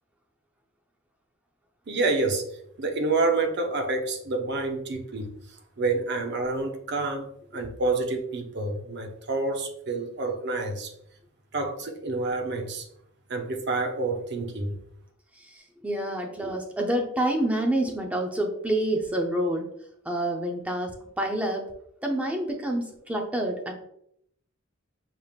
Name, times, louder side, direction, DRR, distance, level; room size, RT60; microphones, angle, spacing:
voice 1, 1.9-2.4 2.8-5.3 5.8-7.3 7.5-10.9 11.5-12.9 13.3-14.8, right 3 dB, 55° right, 5 dB, 0.7 m, -28 dB
voice 2, 15.4-19.7 20.0-21.6 22.0-23.7, right 1 dB, 5° right, 2 dB, 0.6 m, -28 dB
5.5 x 3.4 x 2.4 m, 0.71 s
head